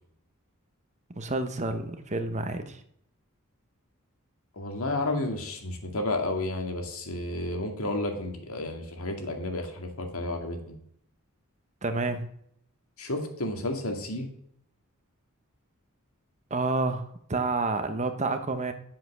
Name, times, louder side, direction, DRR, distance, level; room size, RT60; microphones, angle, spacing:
voice 1, 1.2-2.8 11.8-12.3 16.5-18.7, right 3 dB, 35° right, 8 dB, 1.0 m, -29 dB
voice 2, 4.6-10.6 13.0-14.3, left 2 dB, 75° left, 4 dB, 2.2 m, -31 dB
10.5 x 7.5 x 6.2 m, 0.69 s
head